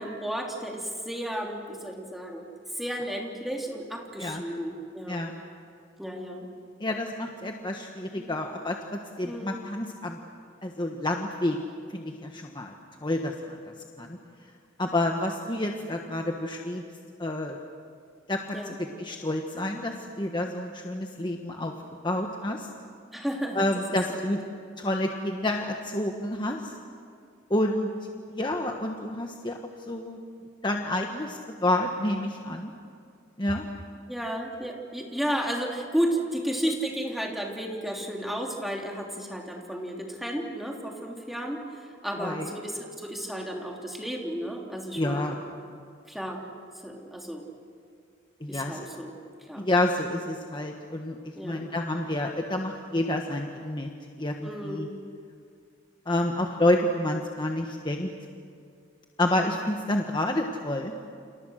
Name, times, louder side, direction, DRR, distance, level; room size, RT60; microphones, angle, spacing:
voice 1, 0.0-2.5 2.7-5.3 6.0-6.5 8.2-8.3 9.2-9.6 18.5-18.7 23.1-23.8 24.1-24.6 34.1-45.4 46.1-46.4 46.7-47.4 48.5-49.1 49.4-49.6 51.3-51.7 54.4-54.9, equal, ahead, 0 dB, 3.2 m, -33 dB
voice 2, 6.8-10.2 10.6-11.6 11.9-12.7 13.0-14.2 14.8-16.8 17.2-17.6 18.3-18.6 19.0-21.7 22.0-22.7 23.5-24.4 24.8-26.7 27.5-27.9 28.3-29.6 29.9-30.2 30.6-32.7 33.4-33.6 42.2-42.5 44.9-45.4 48.4-48.9 49.6-53.9 54.2-54.9 56.1-58.1 59.2-60.9, left 1 dB, 25° left, 2 dB, 1.4 m, -29 dB
30.0 x 27.5 x 6.5 m, 2.3 s
head